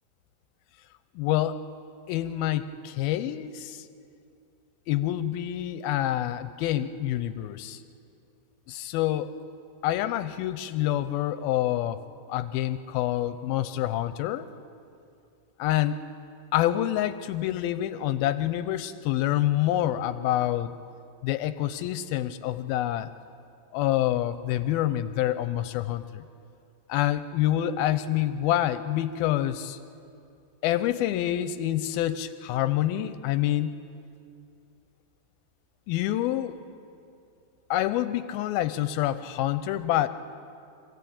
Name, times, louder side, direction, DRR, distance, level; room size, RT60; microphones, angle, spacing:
voice 1, 1.2-1.6 2.1-3.9 4.9-7.8 8.7-9.3 9.8-12.0 12.3-14.5 15.6-16.0 16.5-20.7 21.2-23.1 23.7-26.2 26.9-29.8 30.6-33.7 35.9-36.6 37.7-40.1, left 13 dB, 90° left, 12 dB, 2.6 m, -27 dB
26.5 x 16.0 x 8.7 m, 2.5 s
omnidirectional pair, 4.2 m